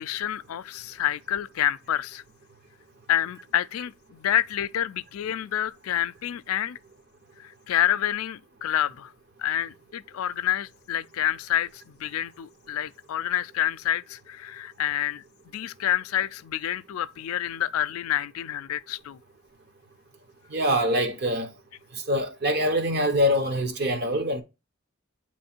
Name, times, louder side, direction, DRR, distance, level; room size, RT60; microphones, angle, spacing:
voice 1, 0.0-2.2 3.1-6.8 7.4-9.1 9.4-15.2 15.5-19.2, left 11 dB, 90° left, 0.4 m, -28 dB
voice 2, 20.5-21.5 22.1-24.4, equal, 50° right, 0.9 m, -24 dB
7.8 x 3.1 x 4.3 m
head